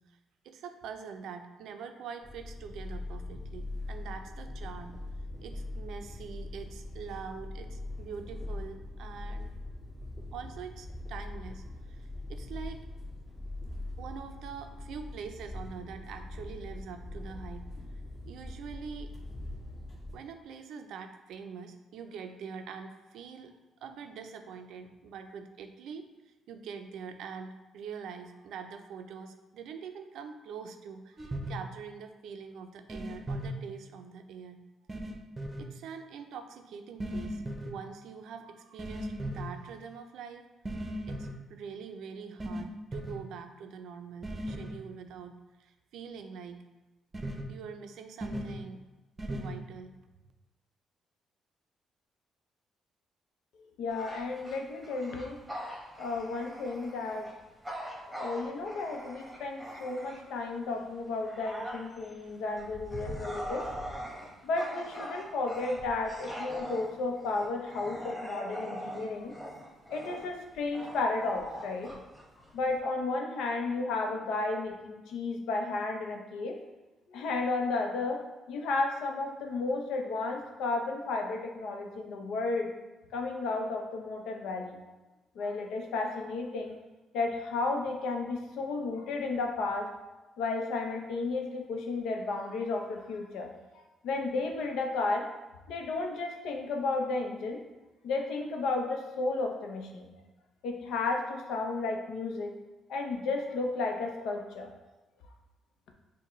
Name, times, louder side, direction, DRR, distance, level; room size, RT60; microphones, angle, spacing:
voice 1, 0.4-5.0 5.4-9.5 10.3-12.9 14.0-17.6 18.3-19.1 20.1-34.6 35.6-40.4 41.1-46.6 47.5-48.8 49.3-50.0, right 6 dB, 80° right, 6 dB, 0.4 m, -44 dB
sound 1, 2.2-20.1, left 2 dB, 30° left, 1.4 m, -41 dB
sound 2, 31.2-31.5 32.9-33.5 34.9-35.6 37.0-37.7 38.8-39.5 40.7-41.3 42.4-42.6 42.9-43.2 44.2-44.7 47.1-47.4 48.2-48.5 49.2-49.5, right 1 dB, 25° right, 0.6 m, -36 dB
voice 2, 53.8-55.4 56.0-57.3 58.1-63.6 64.4-69.3 69.9-71.9 72.5-76.6 77.1-82.7 83.1-84.8 85.4-86.8 87.1-89.9 90.4-93.5 94.0-95.3 95.7-97.6 98.0-100.1 100.6-102.5 102.9-104.7, left 3 dB, 85° left, 2 dB, 0.6 m, -33 dB
Bark / Growling, 53.9-60.4 60.9-72.8, equal, 5° right, 1.2 m, -42 dB
6.5 x 2.2 x 3.0 m, 1.1 s
cardioid pair, 90°, 0 cm